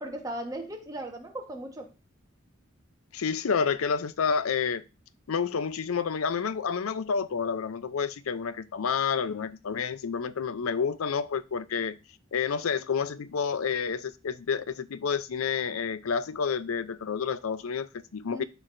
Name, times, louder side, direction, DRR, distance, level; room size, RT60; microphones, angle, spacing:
voice 1, 0.0-1.9 18.3-18.4, right 1 dB, 15° right, 1.2 m, -37 dB
voice 2, 3.1-4.8 5.3-12.0 12.3-18.4, left 6 dB, 90° left, 0.5 m, -29 dB
12.5 x 4.7 x 2.6 m
head